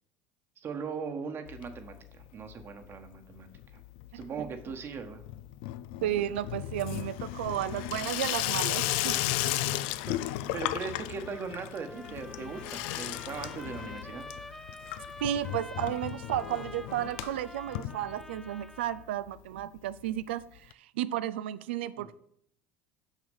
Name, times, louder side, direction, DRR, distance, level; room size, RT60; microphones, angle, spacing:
voice 1, 0.6-3.8 4.1-5.2 10.1-14.3 22.0-22.2, right 5 dB, 45° right, 1.2 m, -39 dB
Water tap faucet / Sink (filling or washing), 1.5-2.3 2.5-3.1 3.4-18.6 19.0-19.1 19.3-19.4 19.6-19.7 20.7-20.8, left 15 dB, 75° left, 0.3 m, -35 dB
voice 2, 4.1-4.5 6.0-9.2 9.4-9.6 15.2-22.2, right 12 dB, 90° right, 0.3 m, -33 dB
Trumpet, 11.2-19.1, left 1 dB, 5° left, 0.5 m, -48 dB
6.4 x 6.2 x 5.4 m
supercardioid pair, 85°, 6 cm